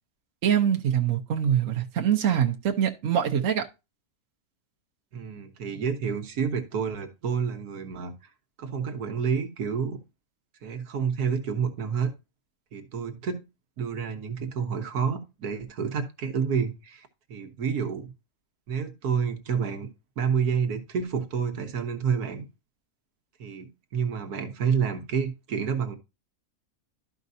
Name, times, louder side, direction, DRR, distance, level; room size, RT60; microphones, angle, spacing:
voice 1, 0.4-3.6, right 9 dB, 60° right, 1.2 m, -24 dB
voice 2, 5.1-8.1 8.6-10.0 10.6-12.1 12.7-13.4 13.8-18.1 18.7-22.4 23.4-26.0, right 6 dB, 80° right, 1.5 m, -29 dB
12.0 x 5.2 x 2.7 m
omnidirectional pair, 1.6 m